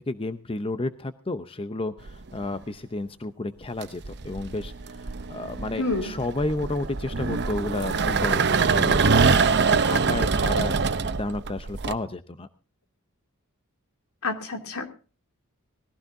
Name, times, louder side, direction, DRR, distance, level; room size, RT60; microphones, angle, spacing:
voice 1, 0.0-4.7 5.3-12.5, left 2 dB, 25° left, 11 dB, 0.7 m, -32 dB
sound 1, 2.1-2.5 3.6-11.9, right 5 dB, 50° right, 0.8 m, -24 dB
voice 2, 5.8-6.1 14.2-14.9, left 3 dB, 80° left, 5 dB, 3.0 m, -28 dB
20.5 x 15.5 x 2.7 m, 0.36 s
head